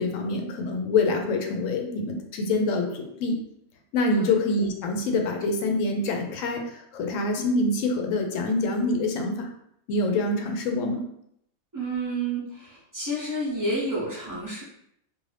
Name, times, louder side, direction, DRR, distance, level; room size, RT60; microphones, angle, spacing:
voice 1, 0.0-3.4 3.9-9.5 9.9-11.0, left 2 dB, 75° left, 3 dB, 0.9 m, -26 dB
voice 2, 11.7-14.6, right 1 dB, 20° right, -7 dB, 0.6 m, -30 dB
2.6 x 2.5 x 3.2 m, 0.73 s
omnidirectional pair, 1.4 m